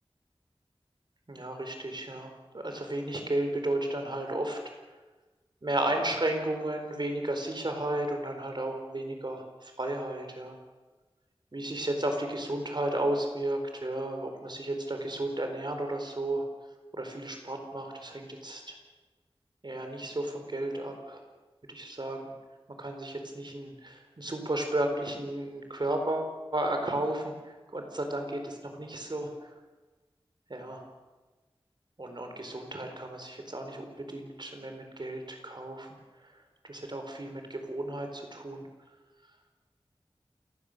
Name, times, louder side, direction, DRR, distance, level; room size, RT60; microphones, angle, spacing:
voice 1, 1.3-4.6 5.6-10.5 11.5-16.4 16.9-18.7 19.6-21.2 21.7-22.2 22.8-29.5 30.5-30.8 32.0-35.9 36.2-36.4 36.7-38.6, right 1 dB, 50° right, 4 dB, 4.3 m, -33 dB
28.5 x 15.5 x 6.7 m, 1.2 s
wide cardioid pair, 70°, 10 cm